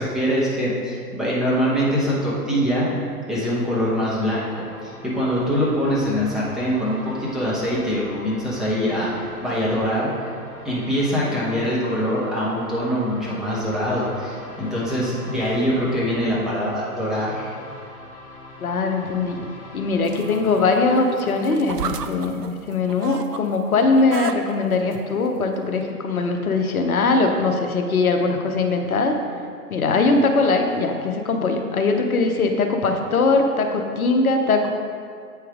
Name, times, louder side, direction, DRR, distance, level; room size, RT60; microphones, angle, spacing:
voice 1, 0.0-2.9 3.3-10.3 10.6-17.5, equal, ahead, -9 dB, 0.9 m, -23 dB
sound 1, 3.7-21.3, left 1 dB, 30° left, 1.7 m, -42 dB
voice 2, 18.6-19.4 19.7-29.2 29.7-34.7, left 3 dB, 65° left, 4 dB, 0.9 m, -21 dB
sound 2, 20.0-23.4 23.7-25.0 25.7-25.8, right 7 dB, 80° right, 0.6 m, -34 dB
7.9 x 5.7 x 3.6 m, 2.2 s
figure-of-eight pair, 125°, 46 cm